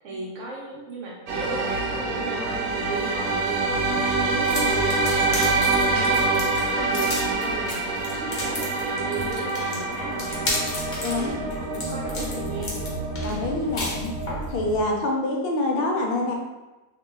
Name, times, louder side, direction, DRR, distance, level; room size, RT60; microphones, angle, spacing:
voice 1, 0.0-7.8 8.2-10.6 11.1-12.9 14.7-15.0, right 3 dB, 65° right, -3 dB, 0.8 m, -36 dB
sound 1, 1.3-14.8, right 3 dB, 80° right, 1.1 m, -26 dB
sound 2, 4.4-14.5, left 1 dB, 50° left, 0.8 m, -33 dB
voice 2, 11.0-11.4 13.2-14.1 14.5-16.3, left 2 dB, 85° left, 0 dB, 0.5 m, -26 dB
2.8 x 2.2 x 3.2 m, 1.1 s
omnidirectional pair, 1.6 m